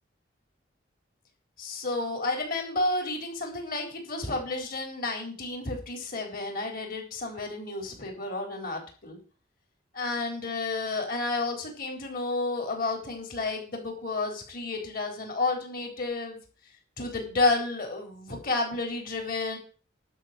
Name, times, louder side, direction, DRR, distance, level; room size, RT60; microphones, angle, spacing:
voice 1, 1.6-9.2 9.9-16.4 17.0-19.6, left 3 dB, 50° left, 2 dB, 4.1 m, -31 dB
12.0 x 5.4 x 8.9 m, 0.39 s
head